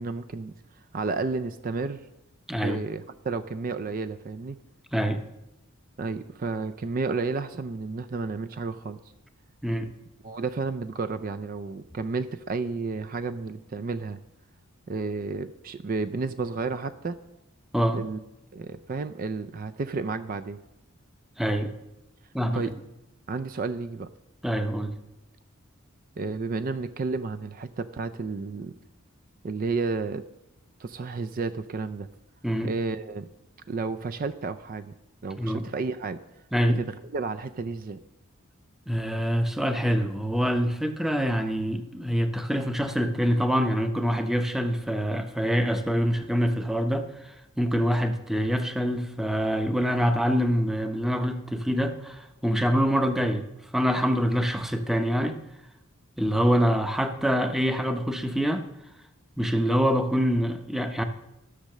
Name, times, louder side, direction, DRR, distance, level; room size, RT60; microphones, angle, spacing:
voice 1, 0.0-2.1 2.6-4.6 6.0-9.0 10.2-14.2 14.9-17.2 17.9-18.2 18.5-20.6 22.5-22.8 23.3-24.1 26.2-28.7 29.4-30.2 30.8-32.1 32.6-33.3 33.7-34.9 35.2-36.2 36.7-38.0, right 4 dB, 40° right, 10 dB, 0.4 m, -31 dB
voice 2, 2.5-2.8 4.9-5.2 9.6-9.9 17.7-18.0 21.4-21.7 22.3-22.6 24.4-24.9 32.4-32.7 35.4-35.6 36.5-36.8 38.9-47.3 47.6-53.4 53.7-55.4 56.2-58.7 59.4-61.0, equal, ahead, 7 dB, 0.7 m, -25 dB
13.5 x 6.3 x 6.6 m, 0.91 s
head